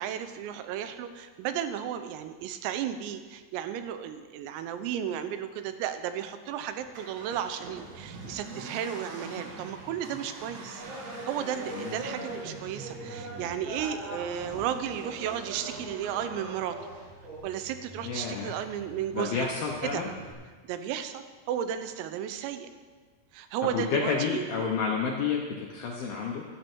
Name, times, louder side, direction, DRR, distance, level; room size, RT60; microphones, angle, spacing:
voice 1, 0.0-10.8 11.3-16.8 17.4-19.5 19.8-20.0 20.6-22.7 23.3-24.6, right 9 dB, 90° right, 10 dB, 3.5 m, -34 dB
Accelerating revving vroom, 6.8-20.3, right 3 dB, 70° right, 4.3 m, -45 dB
sound 1, 10.8-17.0 17.2-17.4, right 1 dB, 55° right, 6.7 m, -41 dB
voice 2, 18.0-18.5 19.1-20.1 23.7-26.4, left 5 dB, 75° left, -2 dB, 2.2 m, -30 dB
14.0 x 12.5 x 4.6 m, 1.5 s
omnidirectional pair, 5.9 m